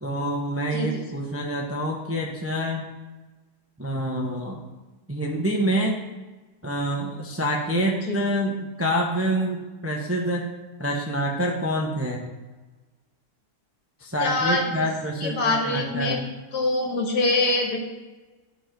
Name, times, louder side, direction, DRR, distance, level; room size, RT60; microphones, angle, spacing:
voice 1, 0.0-2.8 3.8-4.6 5.1-6.0 6.6-10.5 10.8-12.3 14.0-16.2, equal, 10° right, 0 dB, 0.7 m, -26 dB
voice 2, 14.2-14.6 15.2-16.2 16.5-17.8, left 2 dB, 75° left, 1 dB, 2.0 m, -24 dB
11.0 x 5.2 x 5.2 m, 1.2 s
omnidirectional pair, 1.8 m